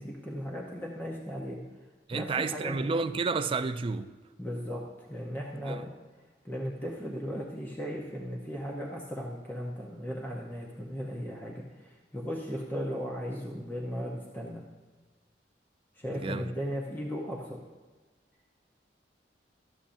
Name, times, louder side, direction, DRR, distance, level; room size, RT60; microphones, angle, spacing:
voice 1, 0.0-1.6 2.1-2.9 4.4-4.8 5.1-5.9 6.4-14.6 16.0-17.6, equal, 10° left, 0.8 m, -36 dB
voice 2, 2.1-4.1 5.6-5.8 16.1-16.5, right 4 dB, 30° right, 0.3 m, -31 dB
12.5 x 7.0 x 2.6 m
head